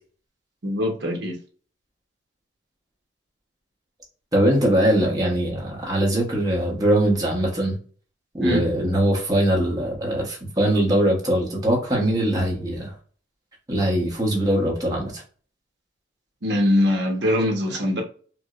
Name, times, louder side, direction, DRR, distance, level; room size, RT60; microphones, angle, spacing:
voice 1, 0.6-1.4 8.4-8.7 16.4-18.0, left 1 dB, 55° right, 0.9 m, -22 dB
voice 2, 4.3-7.8 8.3-12.9 13.7-15.2, right 1 dB, 20° right, 0.9 m, -21 dB
4.6 x 2.1 x 2.4 m
head